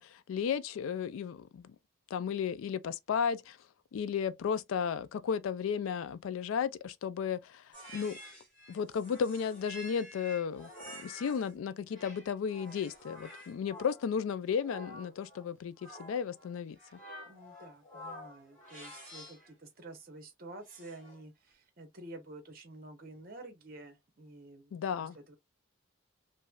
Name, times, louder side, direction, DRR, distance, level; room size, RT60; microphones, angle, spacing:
voice 1, 0.0-1.8 2.1-3.6 3.9-8.2 8.7-17.0 24.7-25.2, left 7 dB, 80° left, 0.3 m, -34 dB
sound 1, 7.7-11.5 11.9-19.5 20.6-21.2, equal, 5° left, 1.6 m, -50 dB
voice 2, 17.2-24.7 25.0-25.3, right 2 dB, 45° right, 0.8 m, -50 dB
3.0 x 2.6 x 2.2 m
head